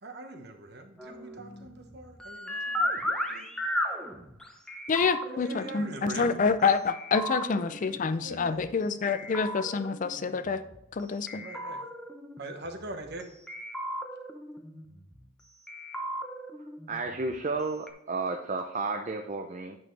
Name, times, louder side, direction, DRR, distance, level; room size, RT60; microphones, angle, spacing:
voice 1, 0.0-2.9 3.3-3.5 5.3-6.4 8.2-8.7 11.4-11.8 12.4-13.3, right 2 dB, 55° right, 5 dB, 1.1 m, -42 dB
sound 1, 1.0-6.6 6.9-8.7 9.1-11.0 11.3-13.2 13.5-15.3 15.7-17.6 17.9-18.0, equal, 5° left, 0.8 m, -36 dB
voice 2, 4.9-10.6 10.9-11.4, left 5 dB, 40° left, 12 dB, 0.4 m, -27 dB
voice 3, 16.9-19.8, right 3 dB, 35° right, 5 dB, 0.5 m, -32 dB
9.0 x 6.3 x 3.2 m, 0.85 s
head